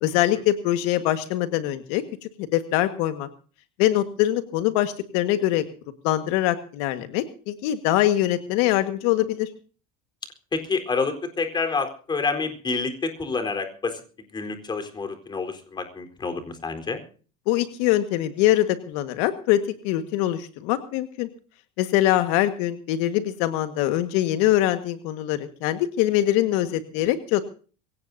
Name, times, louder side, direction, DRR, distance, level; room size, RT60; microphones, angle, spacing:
voice 1, 0.0-2.0 2.5-3.3 3.8-5.6 6.0-9.5 17.5-21.3 21.8-27.4, left 13 dB, 80° left, 9 dB, 1.6 m, -23 dB
voice 2, 10.5-14.0 14.3-17.0, left 4 dB, 20° left, 7 dB, 4.1 m, -28 dB
23.0 x 17.5 x 2.7 m, 0.40 s
cardioid pair, 125°, 20 cm